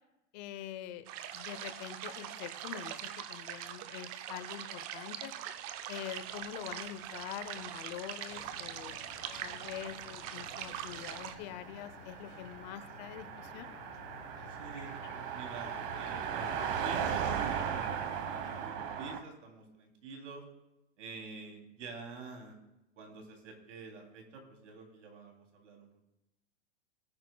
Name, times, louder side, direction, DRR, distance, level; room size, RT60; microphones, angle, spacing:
voice 1, 0.3-1.1 1.3-2.9 3.3-5.3 5.9-9.0 9.4-13.7, left 11 dB, 35° left, 12 dB, 0.7 m, -44 dB
sound 1, 1.1-11.4, right 10 dB, 30° right, 0.5 m, -42 dB
sound 2, 8.3-18.7, left 8 dB, 75° left, 1.4 m, -54 dB
Car passing by, 9.1-19.2, right 8 dB, 50° right, 1.3 m, -38 dB
voice 2, 14.5-18.0 18.3-20.4 21.0-22.6 22.9-25.9, right 4 dB, 85° right, 2 dB, 3.2 m, -48 dB
18.0 x 9.2 x 2.3 m, 0.90 s
hypercardioid pair, 145°, 36 cm